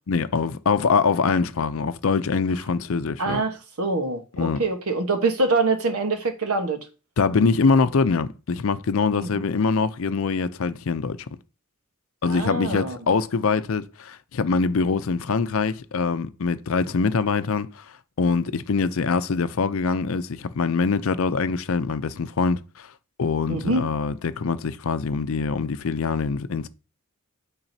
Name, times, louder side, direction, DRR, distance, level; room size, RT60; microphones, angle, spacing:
voice 1, 0.1-3.4 4.3-4.6 7.2-11.2 12.2-17.8 18.2-22.9 23.2-26.7, left 4 dB, 65° left, 0.5 m, -24 dB
voice 2, 3.2-6.8 9.1-9.4 12.2-13.1 23.5-23.9, right 3 dB, 90° right, 1.2 m, -25 dB
8.9 x 3.8 x 2.7 m
head